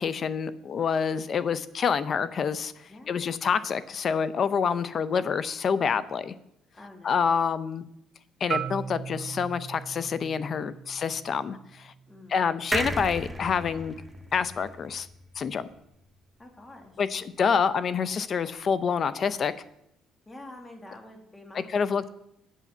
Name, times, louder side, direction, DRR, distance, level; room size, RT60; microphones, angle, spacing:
voice 1, 0.0-2.7 3.1-6.3 7.0-7.8 8.4-11.9 12.3-13.9 14.3-15.1 15.4-15.7 17.0-19.5 21.7-22.1, left 6 dB, 45° left, 15 dB, 0.6 m, -27 dB
voice 2, 2.9-3.2 6.7-7.4 12.1-12.4 16.4-17.0 20.3-21.9, left 2 dB, 20° left, 3 dB, 2.1 m, -47 dB
Marimba xylophone, 8.5-12.7, right 7 dB, 45° right, 0.4 m, -38 dB
sound 1, 12.7-16.2 16.6-16.7 16.9-17.0, right 1 dB, 5° right, 0.8 m, -35 dB
8.4 x 7.0 x 5.5 m, 0.79 s
cardioid pair, 90°, 0 cm